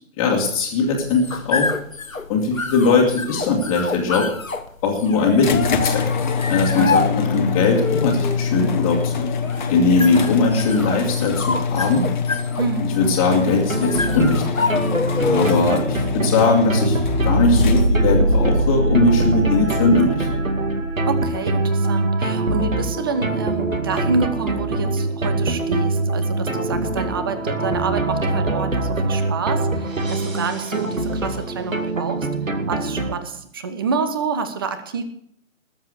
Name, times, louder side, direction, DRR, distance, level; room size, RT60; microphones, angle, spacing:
voice 1, 0.2-1.7 2.3-4.3 4.8-6.1 6.4-9.3 9.7-12.1 13.0-14.7 15.2-20.3, left 3 dB, 15° left, -7 dB, 1.9 m, -20 dB
sound 1, 0.9-15.8, left 4 dB, 85° left, 1.2 m, -28 dB
sound 2, 5.4-18.2, left 6 dB, 35° left, 1.2 m, -24 dB
voice 2, 6.8-7.1 12.6-12.9 15.3-15.6 21.1-32.3 32.7-35.0, right 5 dB, 20° right, 11 dB, 0.8 m, -27 dB
sound 3, 13.5-33.1, right 2 dB, 80° right, 2.3 m, -23 dB
19.5 x 7.4 x 6.6 m, 0.67 s
figure-of-eight pair, 145°, 39 cm